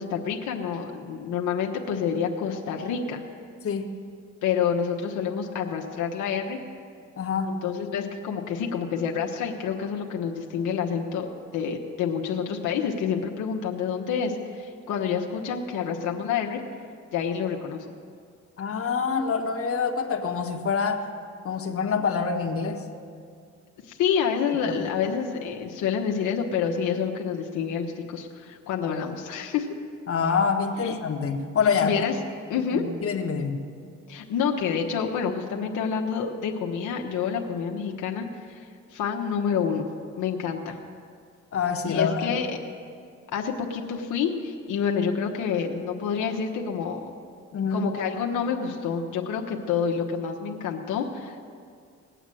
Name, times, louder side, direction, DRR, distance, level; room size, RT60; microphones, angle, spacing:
voice 1, 0.0-3.2 4.4-6.6 7.5-11.3 11.5-16.6 17.1-17.9 23.9-29.7 30.8-31.0 31.6-32.2 32.5-32.9 34.1-38.7 38.9-39.9 40.2-40.8 41.8-42.5 43.3-47.1 47.7-51.4, left 7 dB, 85° left, 1 dB, 1.2 m, -28 dB
voice 2, 7.2-7.6 18.6-21.1 21.4-22.8 24.7-24.8 30.1-32.1 32.7-33.6 41.5-42.4 47.5-47.9, left 5 dB, 50° left, 2 dB, 1.5 m, -26 dB
20.0 x 8.2 x 7.6 m, 2.3 s
cardioid pair, 90°, 30 cm